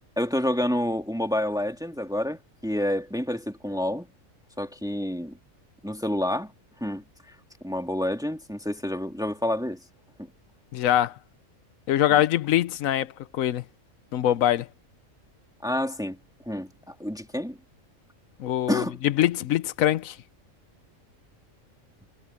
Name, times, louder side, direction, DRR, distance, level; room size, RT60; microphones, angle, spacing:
voice 1, 0.2-4.1 4.6-5.4 5.8-6.5 6.8-7.3 7.6-9.8 15.6-16.2 16.5-17.6 18.7-19.0, left 1 dB, 5° right, 2.5 m, -28 dB
voice 2, 10.7-11.1 11.9-13.6 14.1-14.7 18.4-20.2, left 12 dB, 85° left, 1.1 m, -23 dB
omnidirectional pair, 1.4 m